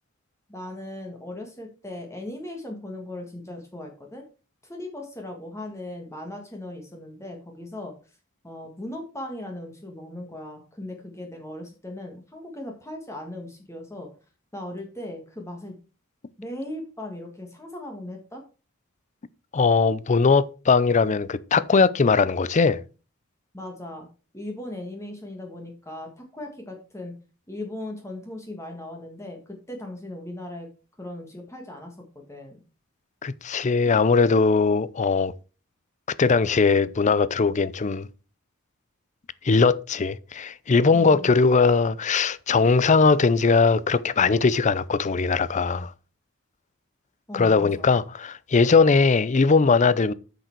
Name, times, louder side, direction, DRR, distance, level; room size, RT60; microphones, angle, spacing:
voice 1, 0.5-4.2 4.6-7.9 8.4-14.1 14.5-15.7 16.4-18.4 23.5-24.1 24.3-27.1 27.5-30.7 31.0-32.6 47.3-48.0, left 1 dB, 15° left, 1.6 m, -38 dB
voice 2, 19.5-22.8 33.2-35.3 36.2-38.1 39.4-45.9 47.3-50.1, left 4 dB, 35° left, 0.5 m, -20 dB
7.9 x 6.8 x 4.5 m
head